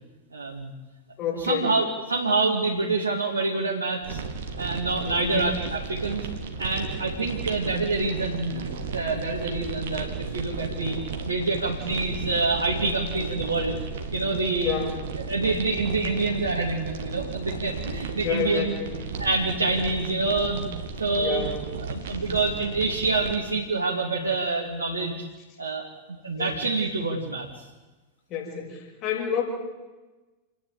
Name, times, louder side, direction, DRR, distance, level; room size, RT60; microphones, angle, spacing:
voice 1, 0.3-0.7 1.3-4.2 4.6-6.2 6.6-13.8 14.1-14.8 15.3-18.7 19.2-20.7 21.0-21.5 21.8-25.1 25.6-27.5, right 3 dB, 75° right, -2 dB, 2.7 m, -27 dB
voice 2, 1.2-1.7 5.0-5.5 14.6-15.0 18.2-18.9 21.1-21.6 26.4-26.5 28.3-29.4, left 7 dB, 35° left, 0 dB, 6.4 m, -29 dB
sound 1, 4.0-23.4, right 5 dB, 60° right, 2.4 m, -34 dB
29.5 x 10.5 x 9.2 m, 1.2 s
figure-of-eight pair, 90°, 0 cm